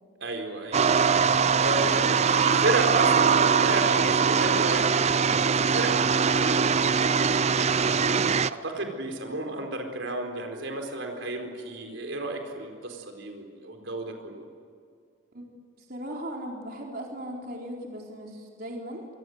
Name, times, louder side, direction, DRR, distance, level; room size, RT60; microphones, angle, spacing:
voice 1, 0.2-1.0 1.3-8.0 8.5-14.4, right 2 dB, 70° right, 3 dB, 4.4 m, -33 dB
sound 1, 0.7-8.5, right 6 dB, 35° right, 0.6 m, -22 dB
voice 2, 15.9-19.1, equal, 50° right, -1 dB, 4.2 m, -37 dB
27.5 x 25.0 x 8.1 m, 2.2 s
head